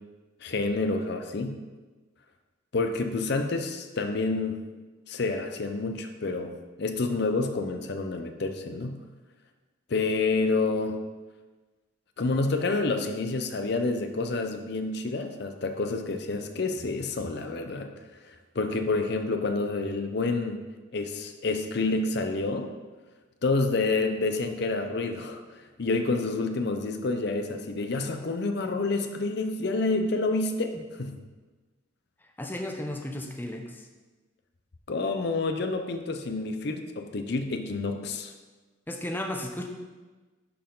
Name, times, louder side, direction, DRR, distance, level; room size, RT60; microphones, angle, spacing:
voice 1, 0.4-1.6 2.7-4.6 5.1-6.5 6.8-9.0 9.9-11.0 12.2-17.9 18.5-20.6 20.9-22.7 23.4-31.2 34.9-38.3, left 3 dB, 55° left, 6 dB, 0.6 m, -28 dB
voice 2, 32.4-33.8 38.9-39.7, left 1 dB, 10° left, 2 dB, 0.6 m, -34 dB
11.0 x 4.5 x 3.8 m, 1.3 s
head